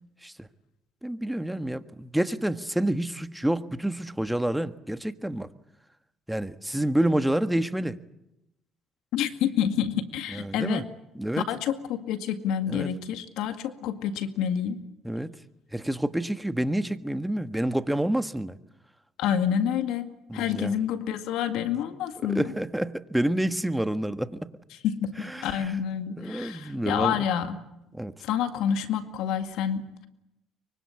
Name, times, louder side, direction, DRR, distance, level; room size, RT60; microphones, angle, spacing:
voice 1, 1.0-5.5 6.3-8.0 10.3-10.8 11.1-11.4 12.7-12.9 15.0-15.3 15.7-18.6 20.3-20.7 22.2-24.5 25.2-25.7 26.2-27.2 27.9-28.1, right 1 dB, 5° right, 11 dB, 1.5 m, -28 dB
voice 2, 9.1-10.9 11.4-14.8 19.2-22.5 24.8-27.6 28.2-30.1, left 9 dB, 75° left, 8 dB, 2.0 m, -28 dB
24.5 x 24.0 x 8.5 m, 0.89 s
supercardioid pair, 65°, 0 cm